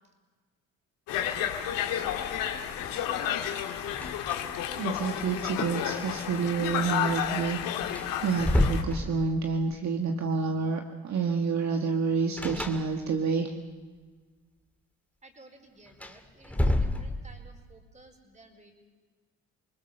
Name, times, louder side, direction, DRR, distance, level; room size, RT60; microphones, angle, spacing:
Conversation, 1.1-8.8, left 9 dB, 85° left, 2.1 m, -31 dB
sound 1, 2.2-7.3, left 5 dB, 40° left, 3.4 m, -47 dB
sound 2, 3.9-4.7 5.0-5.1 7.4-7.5 7.9-9.6 12.4-13.3 15.9-17.5, left 1 dB, 5° left, 2.4 m, -29 dB
voice 1, 4.8-7.9 8.2-13.5, right 5 dB, 55° right, 3 dB, 1.8 m, -29 dB
voice 2, 15.2-18.7, right 2 dB, 20° right, 4 dB, 4.7 m, -54 dB
28.0 x 20.0 x 6.7 m, 1.4 s
cardioid pair, 95°, 33 cm